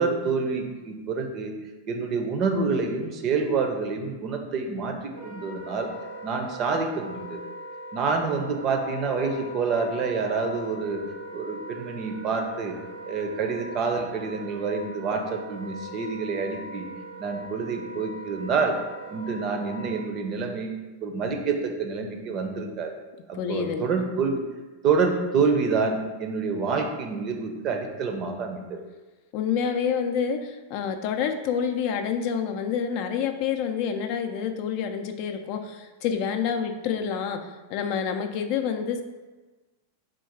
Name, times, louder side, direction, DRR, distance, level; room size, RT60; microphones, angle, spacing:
voice 1, 0.0-1.5 1.9-5.9 6.2-7.4 7.9-11.0 11.3-12.7 13.1-16.9 17.2-18.8 19.1-20.7 21.0-23.0 23.3-24.4 24.8-28.8, right 4 dB, 40° right, 4 dB, 0.6 m, -27 dB
Wind instrument woodwind instrument, 5.1-20.1, right 1 dB, 90° right, 0.8 m, -41 dB
voice 2, 23.3-24.0 29.3-39.0, left 7 dB, 50° left, 6 dB, 0.4 m, -28 dB
3.7 x 2.3 x 4.5 m, 1.2 s
hypercardioid pair, 125°, 0 cm